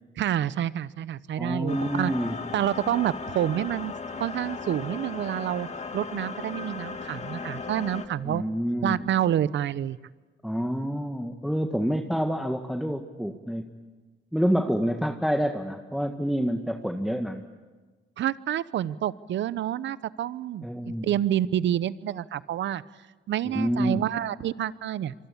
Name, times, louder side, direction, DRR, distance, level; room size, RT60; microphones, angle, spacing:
voice 1, 0.2-2.1 2.5-8.4 8.8-10.0 18.2-22.8 23.3-25.1, right 11 dB, 70° right, 17 dB, 0.9 m, -28 dB
voice 2, 1.4-2.4 8.2-9.0 10.4-13.7 14.3-17.4 20.6-21.1 23.5-24.1, equal, ahead, 5 dB, 1.6 m, -27 dB
sound 1, 1.7-8.1, left 4 dB, 35° left, 2.2 m, -36 dB
26.0 x 24.5 x 8.7 m, 1.3 s
cardioid pair, 90°, 20 cm